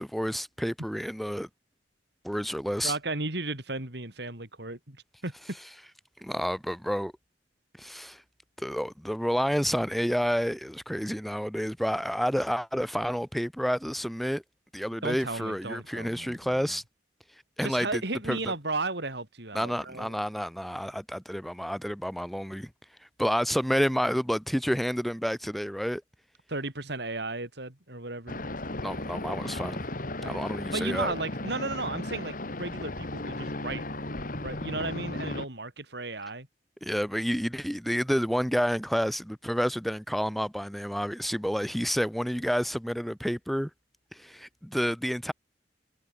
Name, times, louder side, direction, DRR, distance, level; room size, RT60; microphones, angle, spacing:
voice 1, 0.0-1.5 2.2-2.9 6.2-7.1 7.8-8.2 8.6-14.4 14.7-16.8 17.6-18.0 18.3-18.5 19.5-22.7 23.2-26.0 28.8-29.9 30.2-31.1 36.8-43.7 44.1-45.3, equal, ahead, 0.7 m, -29 dB
voice 2, 2.8-5.3 15.0-16.6 17.6-20.1 26.5-28.4 30.2-30.4 30.7-33.8 34.4-36.5, right 2 dB, 65° right, 4.3 m, -34 dB
sound 1, 28.3-35.4, left 2 dB, 50° left, 3.0 m, -35 dB
head